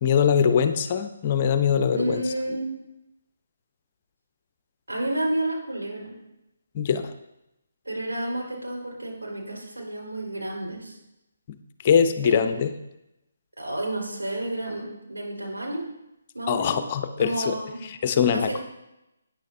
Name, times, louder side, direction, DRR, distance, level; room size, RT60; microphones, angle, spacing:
voice 1, 0.0-2.2 6.7-7.1 11.8-12.7 16.5-17.5 18.0-18.6, left 7 dB, 35° left, 9 dB, 0.7 m, -22 dB
voice 2, 1.9-2.7 4.9-6.2 7.8-11.0 12.2-12.4 13.6-15.9 16.3-16.8 17.2-17.9 18.3-18.6, right 1 dB, 85° right, -2 dB, 4.0 m, -30 dB
13.0 x 9.5 x 2.7 m, 0.90 s
figure-of-eight pair, 145°, 0 cm